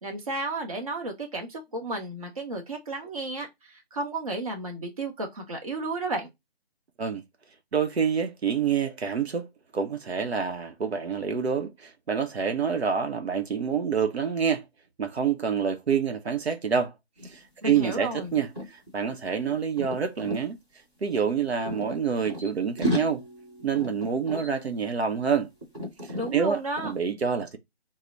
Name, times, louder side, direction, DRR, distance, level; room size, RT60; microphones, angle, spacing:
voice 1, 0.0-6.3 17.6-18.3 26.1-26.9, right 2 dB, 35° right, 0.8 m, -33 dB
voice 2, 7.7-14.6 15.0-16.9 17.2-20.6 21.0-23.2 23.6-25.5 26.0-27.6, right 6 dB, 80° right, 0.8 m, -27 dB
sound 1, 17.2-17.4 17.6-20.4 21.2-22.5 22.8-25.3 25.6-26.3 26.8-27.0, equal, 10° right, 1.0 m, -34 dB
3.2 x 2.1 x 3.8 m
figure-of-eight pair, 170°, 32 cm